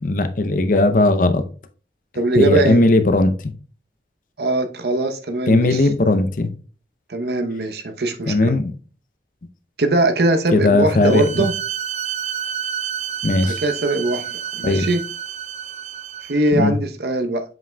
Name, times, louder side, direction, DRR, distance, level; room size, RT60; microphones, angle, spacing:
voice 1, 0.0-1.5 2.4-3.5 5.5-6.5 8.3-8.7 10.5-11.5 13.2-13.6 14.6-14.9 16.5-16.8, left 2 dB, 45° left, 0.5 m, -17 dB
voice 2, 2.1-2.8 4.4-5.9 7.1-8.5 9.8-11.5 13.4-15.0 16.3-17.4, right 2 dB, 65° right, 0.7 m, -21 dB
Bowed string instrument, 11.0-16.5, right 8 dB, 40° right, 0.4 m, -29 dB
7.4 x 5.7 x 2.2 m
head